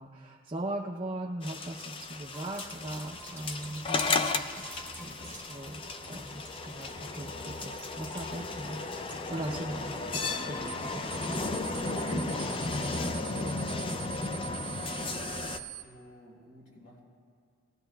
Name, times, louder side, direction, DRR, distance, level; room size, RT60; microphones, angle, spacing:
voice 1, 0.0-5.8 6.1-12.6, right 1 dB, 25° right, -2 dB, 0.5 m, -40 dB
sound 1, 1.4-15.6, left 3 dB, 25° left, 0.3 m, -34 dB
sound 2, 2.3-10.0 10.3-11.8 12.1-12.2 12.5-12.6, right 2 dB, 10° left, 1.0 m, -51 dB
sound 3, 10.7-10.8 11.1-15.8, right 16 dB, 90° right, 0.5 m, -43 dB
voice 2, 15.0-17.0, equal, 70° left, -4 dB, 4.0 m, -54 dB
19.5 x 15.0 x 2.3 m, 2.1 s
head